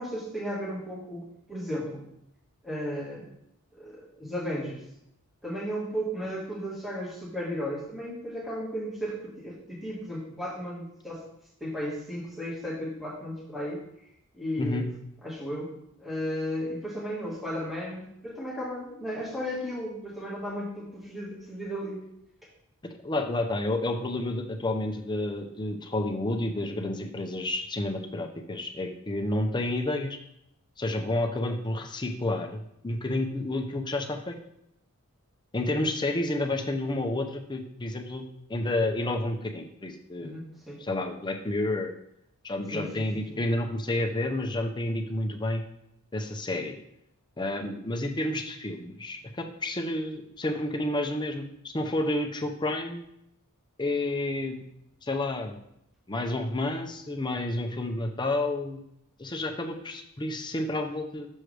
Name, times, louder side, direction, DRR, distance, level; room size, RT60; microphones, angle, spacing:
voice 1, 0.0-2.1 2.6-3.3 3.7-4.8 5.4-11.2 11.6-13.8 14.3-14.9 15.2-15.7 16.0-22.0 40.2-40.8 42.7-43.4, equal, ahead, -6 dB, 1.6 m, -35 dB
voice 2, 23.0-30.2 30.8-34.4 35.5-38.2 38.5-40.4 40.8-41.9 42.4-45.6 46.1-46.8 47.4-53.0 53.8-54.6 55.0-55.6 56.1-58.8 59.2-61.3, left 1 dB, 20° left, 4 dB, 0.6 m, -30 dB
6.3 x 6.3 x 3.3 m, 0.77 s
head